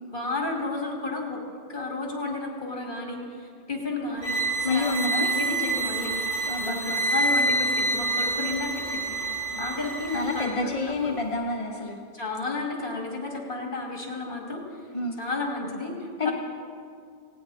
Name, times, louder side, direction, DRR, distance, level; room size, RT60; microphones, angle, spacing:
voice 1, 0.1-1.4 1.7-4.4 4.7-6.1 6.6-9.0 9.3-11.2 12.1-14.6 15.2-16.3, left 3 dB, 55° left, 0 dB, 2.7 m, -32 dB
sound 1, 4.2-10.5, right 2 dB, 50° right, 2.2 m, -27 dB
voice 2, 4.6-5.3 6.5-7.0 9.5-9.6 10.1-12.0 14.9-15.2 16.2-16.3, left 2 dB, 35° left, 0 dB, 1.0 m, -29 dB
18.0 x 17.0 x 4.2 m, 2.3 s
omnidirectional pair, 1.0 m